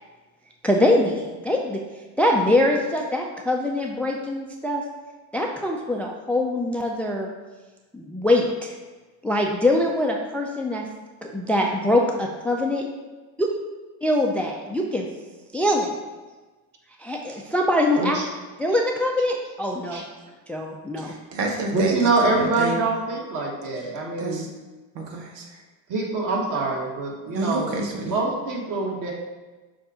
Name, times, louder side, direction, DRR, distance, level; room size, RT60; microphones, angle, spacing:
voice 1, 0.6-1.8 2.2-4.8 5.3-7.3 7.9-8.7 9.2-10.9 11.2-12.8 13.4-13.5 14.0-15.1 15.5-15.9 17.0-18.2 18.6-20.0 20.5-21.1, left 1 dB, 5° left, 1 dB, 0.4 m, -23 dB
voice 2, 21.0-22.8 24.2-24.5 24.9-25.4 27.3-28.1, right 3 dB, 85° right, 1 dB, 1.2 m, -29 dB
voice 3, 21.7-24.5 25.9-27.7 28.0-29.1, right 3 dB, 40° right, -2 dB, 1.9 m, -25 dB
7.2 x 2.7 x 5.0 m, 1.2 s
supercardioid pair, 95°, 47 cm